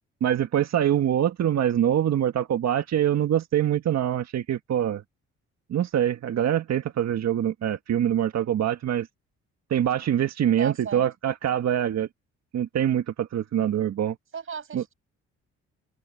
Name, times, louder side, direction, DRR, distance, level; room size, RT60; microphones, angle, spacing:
voice 1, 0.2-5.0 5.7-9.1 9.7-12.1 12.5-14.2 14.7-14.8, right 10 dB, 60° right, 1.8 m, -24 dB
voice 2, 10.4-11.0 14.3-14.9, right 6 dB, 45° right, 7.9 m, -36 dB
open air
cardioid pair, 90°, 30 cm